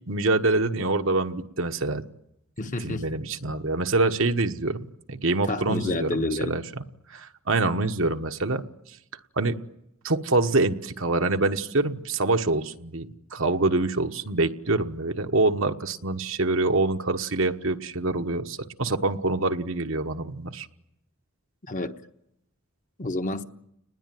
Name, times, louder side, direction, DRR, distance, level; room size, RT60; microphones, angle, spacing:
voice 1, 0.1-2.0 2.8-4.8 5.1-6.8 7.1-8.6 9.4-9.6 10.0-20.7, right 2 dB, 65° right, 1.3 m, -25 dB
voice 2, 2.6-3.0 5.5-6.6 21.7-22.0 23.0-23.4, left 2 dB, 35° left, 1.1 m, -29 dB
30.0 x 20.5 x 9.3 m
head